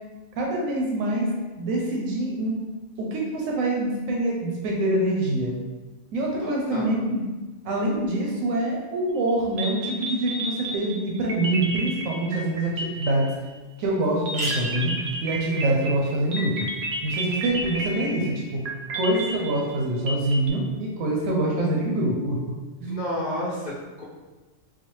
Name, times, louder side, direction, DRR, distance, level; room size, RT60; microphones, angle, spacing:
voice 1, 0.4-2.6 3.0-5.6 6.1-7.2 7.6-13.3 13.8-14.9 15.2-16.7 17.0-18.7 18.9-22.4 22.8-23.0, right 1 dB, 85° right, -2 dB, 1.0 m, -25 dB
voice 2, 6.4-6.9 22.9-24.0, left 1 dB, 55° left, -5 dB, 0.5 m, -31 dB
sound 1, 9.3-9.4 9.6-13.6 14.3-20.5, right 1 dB, 60° right, 0.8 m, -32 dB
sound 2, 12.8-12.9 13.3-13.4 13.6-13.7 14.1-17.8, equal, 30° right, 0.7 m, -39 dB
3.9 x 2.3 x 3.1 m, 1.2 s
omnidirectional pair, 1.4 m